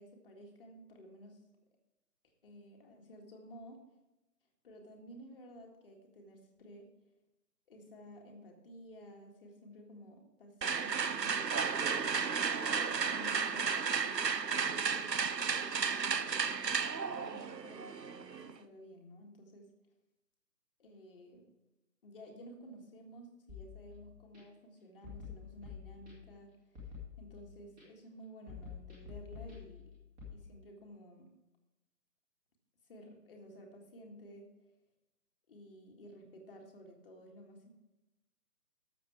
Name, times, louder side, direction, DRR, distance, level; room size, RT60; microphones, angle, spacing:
voice 1, 0.0-1.4 2.4-3.8 4.6-6.9 7.7-11.9 12.7-16.6 16.9-19.7 20.8-21.5 22.0-26.5 27.2-30.0 30.3-31.3 32.9-34.5 35.5-37.7, equal, 35° left, 1 dB, 1.9 m, -53 dB
sound 1, 10.6-18.6, right 6 dB, 85° right, 0.8 m, -33 dB
sound 2, 23.5-24.4 25.0-26.4 26.7-27.8 28.5-30.3, left 6 dB, 10° right, 2.4 m, -49 dB
13.0 x 7.3 x 4.8 m, 1.0 s
figure-of-eight pair, 145°, 49 cm